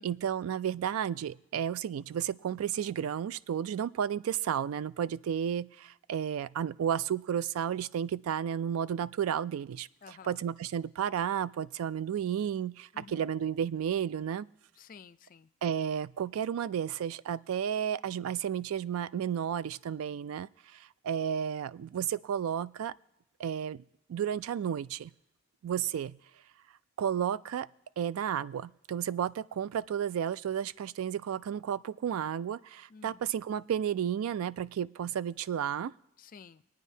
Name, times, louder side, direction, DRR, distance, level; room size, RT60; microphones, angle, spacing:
voice 1, 0.0-14.5 15.6-22.9 23.4-23.8 24.1-25.1 25.6-26.2 27.0-27.7 28.0-35.9, right 9 dB, 75° right, 19 dB, 0.3 m, -32 dB
voice 2, 10.0-10.4 12.9-13.3 14.7-15.5 32.9-33.2 36.2-36.6, left 5 dB, 40° left, 14 dB, 0.4 m, -52 dB
23.5 x 9.2 x 2.7 m, 0.86 s
head